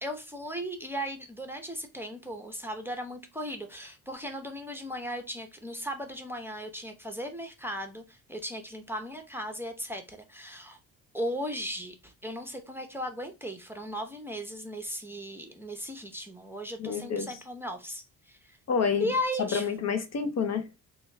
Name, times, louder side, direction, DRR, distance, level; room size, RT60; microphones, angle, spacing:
voice 1, 0.0-10.8 11.1-18.6 19.0-19.7, equal, 5° right, 0.6 m, -36 dB
voice 2, 16.8-17.4 18.7-19.1 19.4-20.7, left 6 dB, 45° left, 0.7 m, -28 dB
3.0 x 2.3 x 3.2 m
cardioid pair, 85°, 35 cm